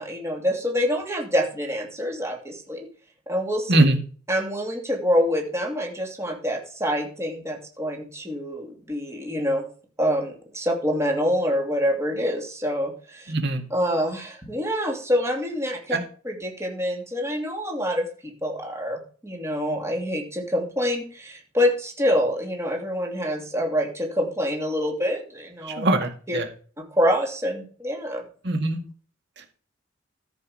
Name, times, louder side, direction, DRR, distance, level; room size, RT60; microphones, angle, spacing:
voice 1, 0.0-2.9 3.3-3.8 4.3-9.6 10.0-13.3 13.7-16.0 16.2-18.1 18.4-25.9 26.3-26.4 26.8-28.2, equal, 15° right, 2 dB, 2.7 m, -26 dB
voice 2, 13.3-13.6 15.9-16.0 25.7-26.5 28.4-28.8 29.4-29.5, right 2 dB, 60° right, 6 dB, 2.0 m, -22 dB
13.5 x 6.4 x 5.0 m, 0.41 s
head